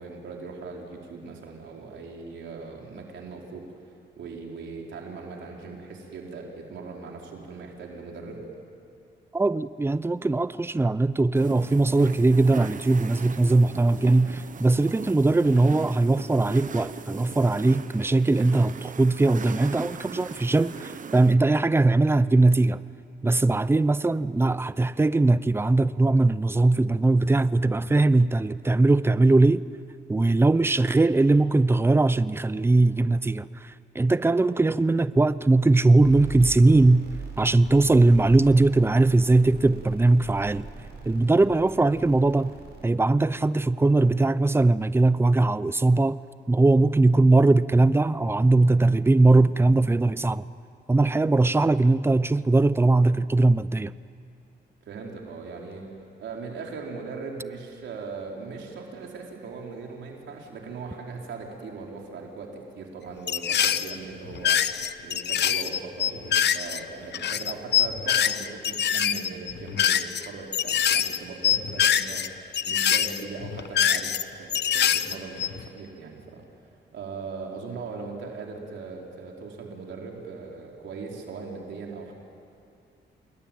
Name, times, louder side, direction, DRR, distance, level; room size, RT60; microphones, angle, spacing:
voice 1, 0.0-3.6 4.2-8.4 54.9-55.8 56.2-62.5 62.8-64.6 65.0-72.2 72.6-74.1 74.4-76.4 76.9-82.1, right 4 dB, 80° right, 4.5 m, -39 dB
voice 2, 9.3-22.8 23.2-29.6 30.1-37.0 37.4-40.7 41.0-42.5 42.8-46.2 46.5-50.4 50.9-53.9, right 2 dB, 15° right, 0.7 m, -20 dB
sound 1, 11.3-21.3, right 6 dB, 45° right, 1.2 m, -39 dB
sound 2, 36.0-42.9, right 5 dB, 60° right, 6.9 m, -40 dB
sound 3, 63.3-64.0 64.3-66.8 67.1-70.3 70.5-71.2 71.4-72.3 72.5-74.2 74.5-75.7, left 9 dB, 65° left, 0.9 m, -24 dB
28.5 x 21.5 x 9.4 m
cardioid pair, 105°, 19 cm